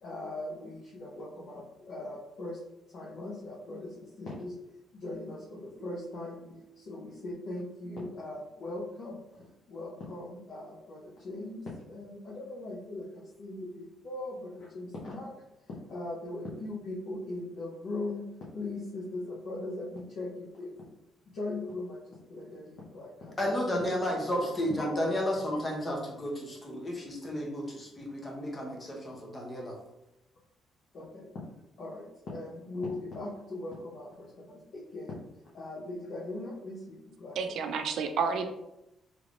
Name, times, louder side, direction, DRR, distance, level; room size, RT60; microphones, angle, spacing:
voice 1, 0.0-2.6 2.9-4.5 4.9-6.4 6.8-15.3 15.6-18.2 18.5-20.7 21.3-25.1 30.9-31.3 31.8-35.2 35.5-37.5, left 2 dB, 55° left, -6 dB, 0.7 m, -40 dB
Keyboard (musical), 5.8-8.6, right 4 dB, 35° left, 1.3 m, -56 dB
voice 2, 23.4-29.8, equal, 20° left, -1 dB, 0.7 m, -32 dB
voice 3, 37.4-38.5, right 5 dB, 65° right, 6 dB, 0.4 m, -30 dB
3.3 x 3.1 x 2.5 m, 0.88 s
cardioid pair, 165°, 0 cm